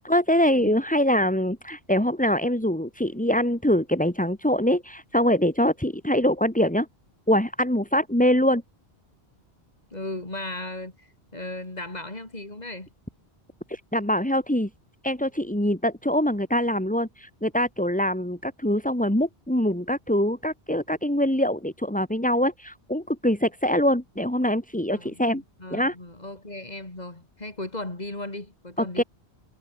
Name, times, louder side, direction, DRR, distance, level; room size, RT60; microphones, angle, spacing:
voice 1, 0.0-6.9 7.3-8.6 13.7-14.7 15.0-25.4 25.7-26.0 28.8-29.0, equal, 5° left, 2.2 m, -24 dB
voice 2, 9.9-12.9 24.9-29.0, left 2 dB, 40° left, 4.0 m, -36 dB
omnidirectional pair, 1.1 m